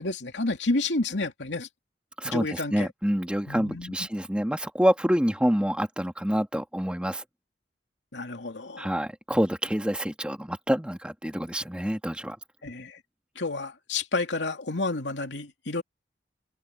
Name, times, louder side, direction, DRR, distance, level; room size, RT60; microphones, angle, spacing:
voice 1, 0.0-1.7 2.2-2.9 3.5-3.9 8.1-8.9 12.6-13.0 13.4-15.8, left 2 dB, 90° left, 2.8 m, -30 dB
voice 2, 2.2-7.2 8.8-12.4, equal, 5° right, 2.2 m, -27 dB
head